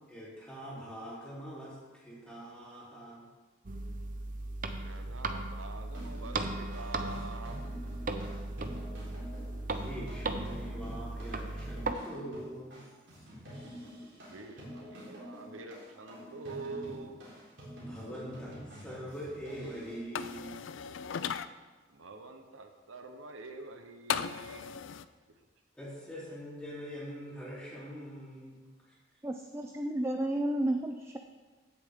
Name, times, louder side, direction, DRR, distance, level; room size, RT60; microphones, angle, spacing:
voice 1, 0.0-3.3 9.8-12.8 17.8-20.7 25.7-28.9, equal, 5° left, -8 dB, 3.5 m, -44 dB
sound 1, 3.6-11.9, right 2 dB, 40° right, 0.7 m, -37 dB
voice 2, 4.8-7.6 14.2-17.2 21.9-24.7, right 3 dB, 80° right, 6 dB, 0.9 m, -46 dB
sound 2, 5.9-20.0, equal, 60° right, 3.9 m, -47 dB
sound 3, 20.1-21.5 24.1-25.0, left 7 dB, 70° left, 0.4 m, -36 dB
voice 3, 29.2-31.2, right 1 dB, 15° right, 4 dB, 0.4 m, -32 dB
16.0 x 7.0 x 3.7 m, 1.3 s
head